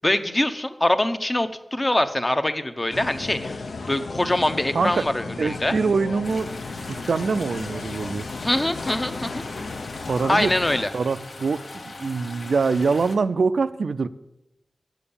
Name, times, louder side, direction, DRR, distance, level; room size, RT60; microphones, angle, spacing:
voice 1, 0.0-5.7 8.4-9.4 10.3-10.9, left 1 dB, 20° left, 9 dB, 0.6 m, -24 dB
sound 1, 2.9-10.8, left 3 dB, 80° left, 0.6 m, -34 dB
voice 2, 5.4-6.5 6.9-8.3 10.0-10.5 10.9-11.6 12.0-14.1, right 4 dB, 80° right, 13 dB, 0.3 m, -24 dB
sound 2, 6.2-13.2, left 2 dB, 65° left, 1.0 m, -40 dB
7.8 x 7.0 x 6.9 m, 0.95 s
wide cardioid pair, 110°, 0 cm